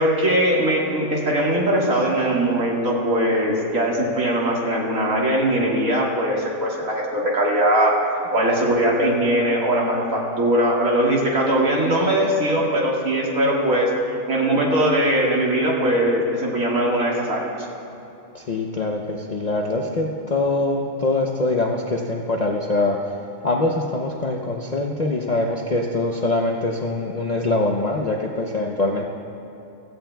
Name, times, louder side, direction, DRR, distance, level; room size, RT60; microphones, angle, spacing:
voice 1, 0.0-8.0 8.3-13.9 14.3-17.5, right 1 dB, 70° right, -3 dB, 2.2 m, -20 dB
voice 2, 18.3-23.0 23.4-29.1, left 2 dB, 45° left, 0 dB, 0.5 m, -23 dB
16.0 x 15.5 x 2.3 m, 2.8 s
omnidirectional pair, 1.5 m